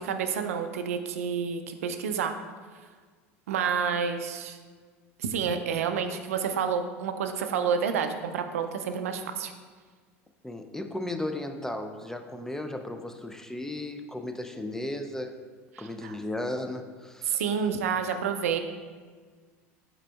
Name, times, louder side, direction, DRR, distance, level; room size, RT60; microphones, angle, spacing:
voice 1, 0.0-2.4 3.5-4.6 5.2-9.5 15.8-16.1 17.3-18.6, right 7 dB, 85° right, 7 dB, 0.4 m, -29 dB
voice 2, 10.4-15.3 15.8-17.4, left 1 dB, 5° left, 6 dB, 0.3 m, -35 dB
4.9 x 4.4 x 2.3 m, 1.5 s
hypercardioid pair, 90°, 8 cm